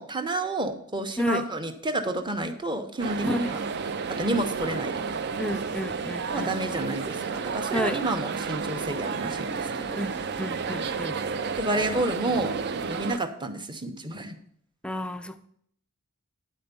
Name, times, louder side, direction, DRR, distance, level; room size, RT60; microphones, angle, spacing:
voice 1, 0.0-3.6 4.1-5.2 6.3-10.0 11.6-12.5 12.9-14.3, right 2 dB, 20° right, 6 dB, 0.9 m, -30 dB
sound 1, 3.0-13.2, right 5 dB, 50° right, 0.5 m, -31 dB
voice 2, 5.4-6.5 7.7-8.0 10.0-11.2 14.8-15.5, left 1 dB, 5° left, 8 dB, 0.5 m, -31 dB
10.0 x 4.4 x 6.8 m, 0.67 s
head